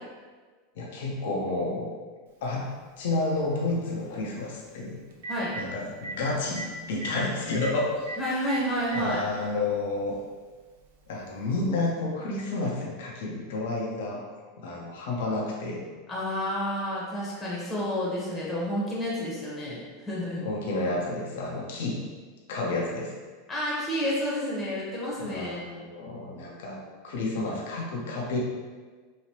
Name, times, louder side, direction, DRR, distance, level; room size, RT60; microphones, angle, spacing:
voice 1, 0.8-1.9 2.4-2.7 3.0-5.0 5.6-8.2 8.9-10.1 11.1-14.2 14.6-15.8 20.4-22.0 22.5-23.1 25.2-26.8 27.0-28.4, left 2 dB, 75° left, -2 dB, 0.7 m, -30 dB
Telephone, 2.4-2.5 4.7-4.8 5.1-5.6 6.0-6.1 6.6-6.7 6.9-7.1 7.6-7.7 8.1-8.2 8.5-9.1 10.0-10.1 11.6-11.7, right 3 dB, 80° right, 0.5 m, -35 dB
voice 2, 8.2-9.2 16.1-20.5 23.5-25.8, equal, 20° left, -6 dB, 1.0 m, -30 dB
3.0 x 2.8 x 2.9 m, 1.4 s
hypercardioid pair, 115°, 0 cm